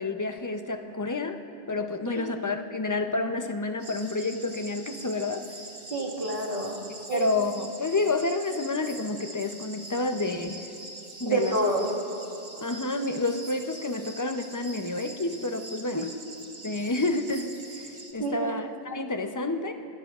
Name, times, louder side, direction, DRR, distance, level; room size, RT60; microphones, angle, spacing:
voice 1, 0.0-1.4 1.7-5.6 7.1-10.7 11.2-11.6 12.6-16.1 16.6-19.7, left 3 dB, 25° left, 6 dB, 0.5 m, -29 dB
sound 1, 3.8-18.1, right 2 dB, 75° right, 1.7 m, -44 dB
voice 2, 5.9-6.8 7.1-7.3 11.3-11.9 15.9-16.0 18.2-18.6, right 2 dB, 55° right, -4 dB, 2.1 m, -28 dB
26.5 x 18.5 x 2.4 m, 2.9 s
omnidirectional pair, 1.1 m